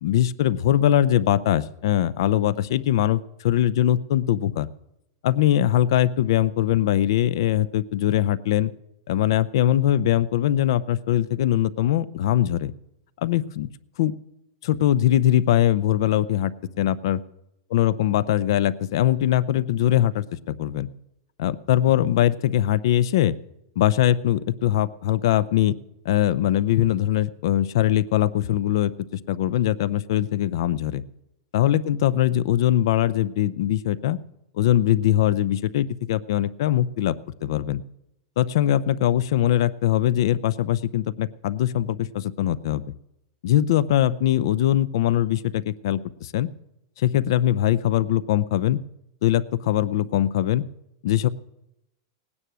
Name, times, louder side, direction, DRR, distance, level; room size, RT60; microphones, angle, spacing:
voice 1, 0.0-4.7 5.2-8.7 9.1-12.7 13.2-13.7 14.0-14.1 14.6-16.5 16.8-17.2 17.7-20.9 21.4-23.4 23.8-25.8 26.0-31.0 31.5-34.2 34.6-37.2 37.4-37.8 38.4-42.8 43.4-46.5 47.0-48.8 49.2-50.6 51.0-51.3, left 12 dB, 60° left, 17 dB, 0.6 m, -21 dB
18.0 x 9.8 x 6.2 m, 0.85 s
supercardioid pair, 170°, 3 cm